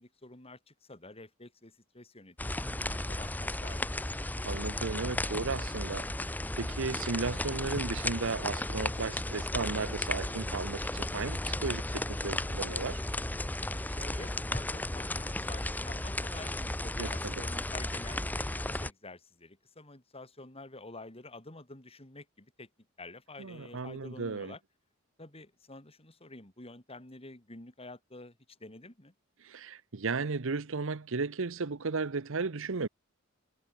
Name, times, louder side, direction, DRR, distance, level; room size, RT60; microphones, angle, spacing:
voice 1, 0.0-4.0 13.9-22.7 23.0-24.6 25.2-29.1, left 2 dB, 30° left, 4.3 m, -49 dB
sound 1, 2.4-18.9, left 1 dB, 10° left, 0.6 m, -34 dB
voice 2, 4.5-6.1 6.6-13.0 17.0-17.4 23.4-24.5 29.4-32.9, right 4 dB, 65° right, 0.9 m, -35 dB
head